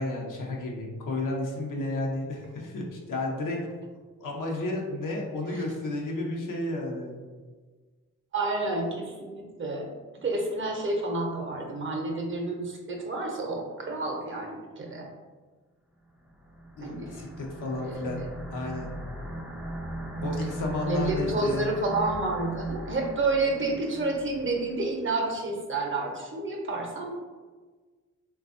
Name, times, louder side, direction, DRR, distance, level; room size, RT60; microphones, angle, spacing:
voice 1, 0.0-3.6 4.2-7.2 16.8-18.9 20.2-21.7, left 2 dB, 70° left, -1 dB, 0.7 m, -32 dB
voice 2, 8.3-9.9 10.2-15.1 16.8-17.3 17.8-18.3 20.9-27.1, right 2 dB, 40° right, 1 dB, 0.7 m, -30 dB
sound 1, 16.3-24.9, right 1 dB, 5° right, 0.4 m, -38 dB
3.2 x 2.3 x 2.5 m, 1.4 s
supercardioid pair, 50°, 33 cm